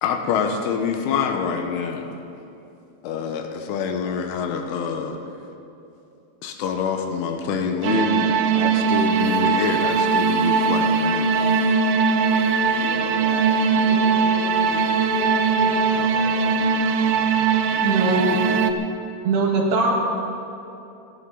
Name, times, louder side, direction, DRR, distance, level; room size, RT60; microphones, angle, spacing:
voice 1, 0.0-2.1 3.0-5.2 6.4-11.3, left 6 dB, 90° left, 4 dB, 3.5 m, -26 dB
sound 1, 7.8-18.7, right 5 dB, 85° right, 2.3 m, -20 dB
voice 2, 12.6-17.2 17.7-18.6, left 1 dB, 70° left, -4 dB, 5.0 m, -38 dB
voice 3, 17.8-18.3 19.2-19.9, right 3 dB, 65° right, -1 dB, 3.3 m, -20 dB
29.5 x 11.0 x 4.0 m, 2.8 s
omnidirectional pair, 5.6 m